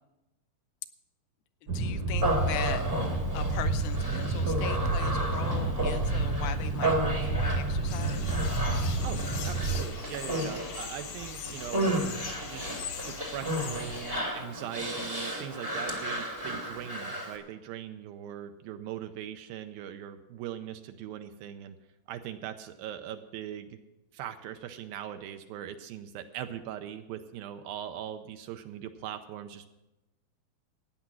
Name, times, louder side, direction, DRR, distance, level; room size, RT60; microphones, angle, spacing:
voice 1, 1.6-8.4, left 11 dB, 85° left, 10 dB, 2.6 m, -40 dB
sound 1, 1.7-9.8, right 3 dB, 55° right, 1.6 m, -30 dB
Human voice, 2.2-17.4, right 1 dB, 35° right, 0.5 m, -33 dB
sound 2, 7.9-14.2, left 7 dB, 60° left, 1.8 m, -41 dB
voice 2, 9.0-11.9 12.4-12.7 13.1-21.8 22.1-23.8 24.1-29.7, right 10 dB, 80° right, 8 dB, 2.4 m, -40 dB
14.5 x 9.5 x 6.1 m, 0.97 s
omnidirectional pair, 4.4 m